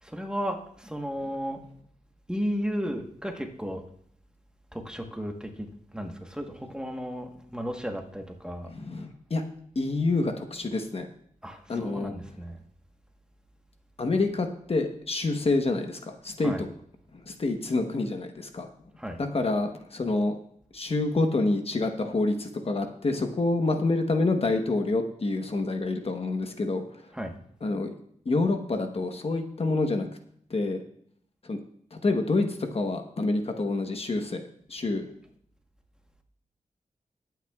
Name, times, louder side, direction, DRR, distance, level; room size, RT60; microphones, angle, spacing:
voice 1, 0.0-1.6 2.3-3.8 4.7-8.7 11.4-12.6 16.4-16.6 19.0-19.2 27.1-27.4, equal, 5° right, 3 dB, 1.2 m, -34 dB
voice 2, 8.7-9.4 9.7-11.1 11.7-12.1 14.0-16.7 17.1-18.7 19.2-20.3 20.7-27.1 27.6-27.9 28.2-30.1 30.5-30.8 31.4-31.6 31.9-34.4 34.7-35.1, left 2 dB, 45° left, 5 dB, 1.1 m, -27 dB
20.5 x 9.1 x 2.4 m, 0.67 s
wide cardioid pair, 115°, 14 cm